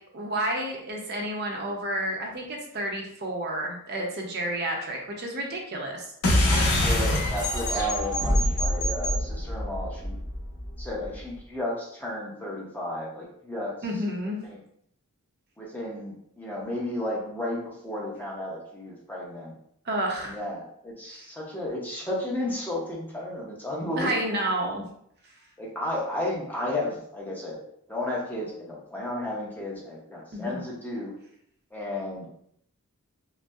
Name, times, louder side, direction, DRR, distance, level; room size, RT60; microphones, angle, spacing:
voice 1, 0.1-6.1 13.8-14.4 19.8-20.4 23.9-24.9 30.3-30.6, right 1 dB, 45° right, 0 dB, 0.6 m, -30 dB
sound 1, 6.2-11.1, left 1 dB, 70° left, 0.8 m, -25 dB
voice 2, 6.4-10.2 10.8-13.7 14.5-14.6 15.6-19.5 20.2-24.5 25.6-27.6 27.9-31.1 31.7-32.3, left 1 dB, 10° left, -4 dB, 0.7 m, -33 dB
5.2 x 2.0 x 2.3 m, 0.68 s
head